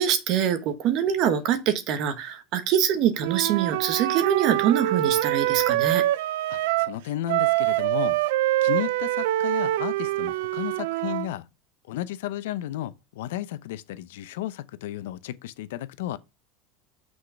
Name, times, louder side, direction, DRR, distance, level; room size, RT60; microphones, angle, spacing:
voice 1, 0.0-6.0, right 9 dB, 55° right, 1.4 m, -24 dB
Wind instrument woodwind instrument, 3.2-7.0 7.3-11.3, right 16 dB, 80° right, 0.4 m, -25 dB
voice 2, 6.5-8.2 8.6-11.5 11.9-16.2, left 13 dB, 85° left, 0.7 m, -33 dB
6.4 x 4.8 x 5.8 m
supercardioid pair, 125°, 0 cm